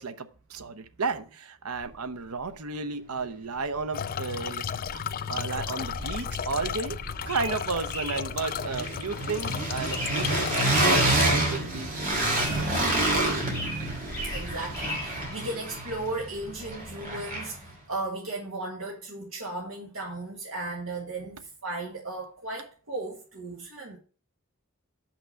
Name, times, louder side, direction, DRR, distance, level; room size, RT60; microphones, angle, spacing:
voice 1, 0.0-5.0 5.3-11.9 12.3-12.8 13.1-13.5, right 4 dB, 90° right, 0.8 m, -33 dB
sound 1, 3.7-3.8 4.1-5.3 5.5-17.7, right 1 dB, 40° right, 2.7 m, -29 dB
sound 2, 3.9-11.5, left 8 dB, 40° left, 0.3 m, -34 dB
sound 3, 7.2-15.3, equal, 10° left, 3.7 m, -39 dB
voice 2, 14.2-24.0, right 2 dB, 65° right, 1.8 m, -36 dB
6.1 x 5.9 x 7.1 m
head